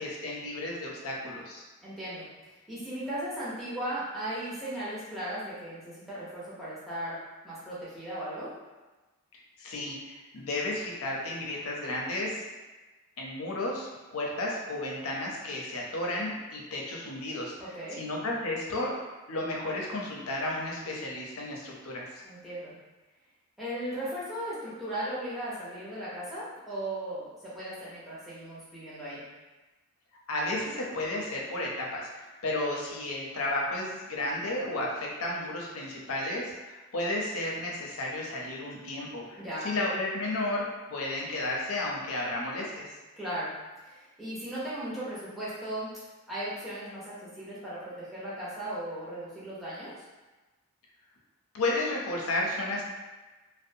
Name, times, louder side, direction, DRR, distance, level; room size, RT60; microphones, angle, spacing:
voice 1, 0.0-1.6 9.3-12.4 13.2-17.5 17.9-18.9 19.3-22.1 30.3-40.6 40.9-42.9 51.5-52.8, left 2 dB, 75° left, -2 dB, 0.6 m, -33 dB
voice 2, 1.8-7.2 7.4-8.5 17.6-18.0 22.2-22.7 23.6-29.2 39.3-39.7 43.2-43.5 43.8-45.9 46.3-49.9, right 1 dB, ahead, -10 dB, 0.7 m, -37 dB
2.6 x 2.1 x 2.6 m, 1.2 s
head